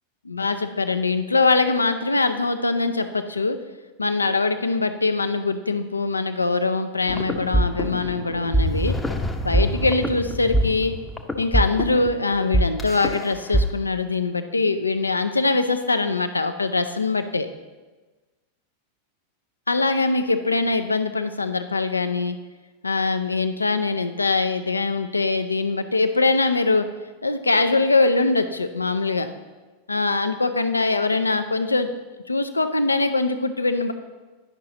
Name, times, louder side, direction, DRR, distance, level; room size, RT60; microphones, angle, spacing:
voice 1, 0.2-3.6 4.0-9.0 9.4-10.9 11.4-17.5 19.7-22.4 22.8-26.9 27.2-29.3 29.9-31.9 32.3-33.9, left 3 dB, 80° left, 9 dB, 0.5 m, -22 dB
sound 1, 7.1-13.6, right 1 dB, 10° left, 0.7 m, -24 dB
10.5 x 5.7 x 3.9 m, 1.3 s
figure-of-eight pair, 90°, 0 cm